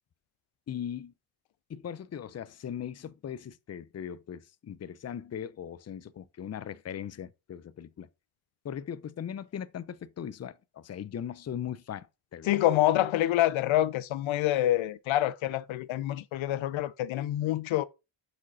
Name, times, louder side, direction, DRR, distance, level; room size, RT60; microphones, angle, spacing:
voice 1, 0.7-1.1 1.7-8.1 8.6-12.6, left 9 dB, 35° left, 0.5 m, -39 dB
voice 2, 12.5-17.9, left 14 dB, 85° left, 0.6 m, -26 dB
6.3 x 5.0 x 4.1 m
cardioid pair, 90°, 46 cm